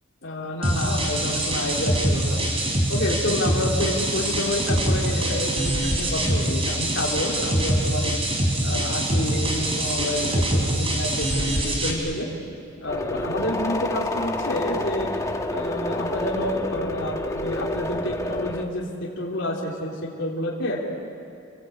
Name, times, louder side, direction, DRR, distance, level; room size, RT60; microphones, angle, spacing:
voice 1, 0.2-2.4 2.9-8.2 8.6-12.3 12.8-15.1 15.5-20.8, left 1 dB, 60° left, -5 dB, 3.6 m, -29 dB
sound 1, 0.6-11.9, right 1 dB, 30° right, 4.5 m, -24 dB
sound 2, 12.9-18.6, left 1 dB, 15° left, 1.4 m, -28 dB
29.5 x 21.5 x 8.7 m, 2.6 s
head